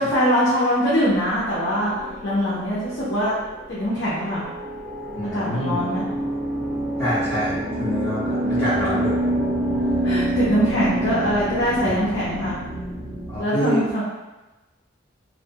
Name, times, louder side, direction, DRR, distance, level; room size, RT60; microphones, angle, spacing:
voice 1, 0.0-3.4 3.7-4.4 5.3-6.0 10.0-12.6 13.4-14.0, equal, 60° left, -9 dB, 0.6 m, -22 dB
sound 1, 1.5-13.4, right 1 dB, 45° right, 0.9 m, -27 dB
voice 2, 5.1-5.8 7.0-9.2 13.3-13.8, equal, 30° left, -12 dB, 0.9 m, -26 dB
2.6 x 2.2 x 2.7 m, 1.1 s
head